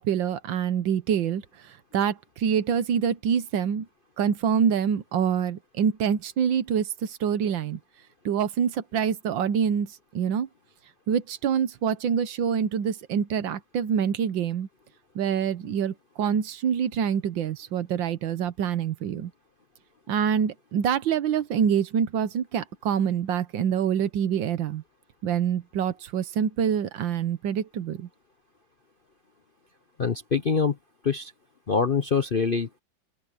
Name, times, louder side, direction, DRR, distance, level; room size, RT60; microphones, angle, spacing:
voice 1, 0.0-1.4 1.9-3.9 4.2-7.8 8.2-10.5 11.1-14.7 15.1-19.3 20.1-24.8 25.2-28.1, right 8 dB, 75° right, 1.7 m, -26 dB
voice 2, 30.0-30.8 31.0-31.3 31.7-32.8, left 5 dB, 45° left, 0.7 m, -24 dB
open air
omnidirectional pair, 2.1 m